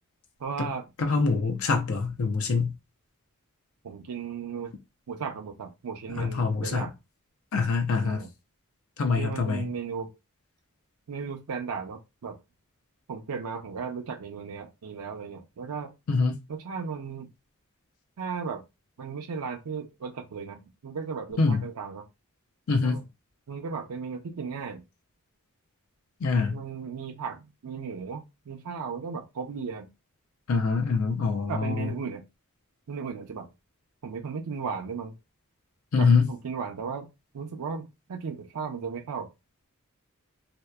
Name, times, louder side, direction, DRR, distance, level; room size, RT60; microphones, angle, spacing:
voice 1, 0.4-0.9 3.8-4.7 5.1-6.9 8.0-8.3 9.2-10.1 11.1-12.4 13.1-15.9 16.5-17.3 18.2-18.6 19.0-22.1 22.8-23.0 23.5-24.8 26.5-29.9 31.5-32.2 32.9-33.5 34.0-35.1 36.0-37.1 37.3-39.3, right 5 dB, 90° right, 0.5 m, -35 dB
voice 2, 1.0-2.7 6.2-6.9 7.5-8.3 9.0-9.7 16.1-16.4 21.4-21.6 22.7-23.0 26.2-26.6 30.5-31.9 35.9-36.3, left 4 dB, 65° left, 0.5 m, -24 dB
2.7 x 2.1 x 2.2 m
head